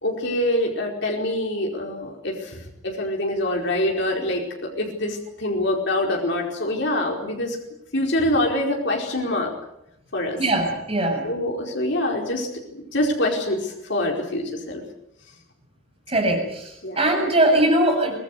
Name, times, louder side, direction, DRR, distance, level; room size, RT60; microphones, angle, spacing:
voice 1, 0.0-7.6 7.9-9.5 10.1-10.4 11.2-12.5 12.7-14.8 16.8-17.0, left 1 dB, 55° left, 1 dB, 4.8 m, -25 dB
voice 2, 10.4-11.3 16.1-16.7 17.0-18.2, right 1 dB, 30° right, 2 dB, 7.4 m, -20 dB
25.0 x 19.5 x 8.1 m, 0.82 s
head